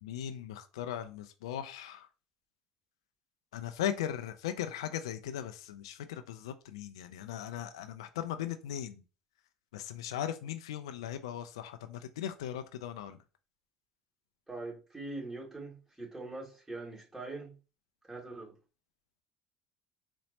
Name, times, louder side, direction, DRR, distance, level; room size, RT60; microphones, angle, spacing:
voice 1, 0.0-2.1 3.5-9.0 9.7-13.2, left 10 dB, 85° left, 0.3 m, -38 dB
voice 2, 14.5-17.5 18.0-18.6, right 2 dB, 10° right, 1.8 m, -42 dB
4.2 x 2.0 x 2.8 m
hypercardioid pair, 80°, 3 cm